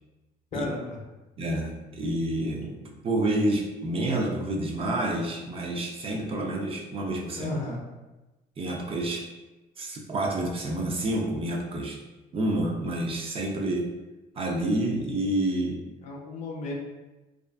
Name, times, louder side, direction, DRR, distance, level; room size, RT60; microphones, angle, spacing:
voice 1, 0.5-1.0 7.3-7.8 16.0-16.7, left 2 dB, 45° left, -1 dB, 0.5 m, -33 dB
voice 2, 1.4-7.5 8.6-9.3 9.8-12.0 12.3-13.9 14.4-15.8, right 1 dB, 35° right, 1 dB, 0.4 m, -28 dB
2.4 x 2.4 x 2.3 m, 1.1 s
cardioid pair, 110°, 17 cm